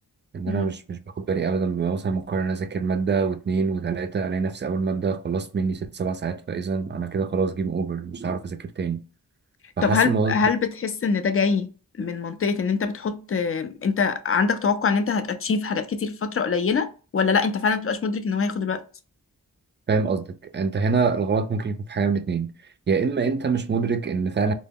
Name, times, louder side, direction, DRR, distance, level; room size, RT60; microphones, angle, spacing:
voice 1, 0.3-9.0 9.8-10.3 19.9-20.3 20.5-22.5 22.9-24.5, right 5 dB, 30° right, 0.4 m, -25 dB
voice 2, 9.8-11.7 12.0-16.9 17.1-18.8, left 5 dB, 40° left, 0.4 m, -24 dB
2.0 x 2.0 x 3.5 m
cardioid pair, 45°, 37 cm